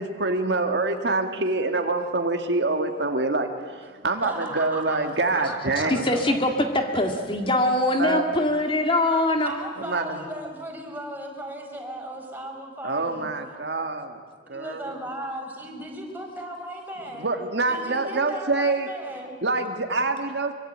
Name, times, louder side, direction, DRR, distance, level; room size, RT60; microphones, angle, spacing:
voice 1, 0.0-6.1 8.0-8.2 9.8-10.2 12.8-14.2 14.5-15.0 17.1-18.9 19.4-20.5, right 3 dB, 70° right, 5 dB, 2.0 m, -26 dB
voice 2, 4.2-6.4 8.1-8.6 9.4-13.3 14.4-17.3 17.7-19.3, right 1 dB, 10° right, 1 dB, 4.8 m, -36 dB
voice 3, 5.9-9.5, left 1 dB, 30° left, 4 dB, 1.9 m, -23 dB
24.0 x 23.5 x 8.8 m, 1.6 s
head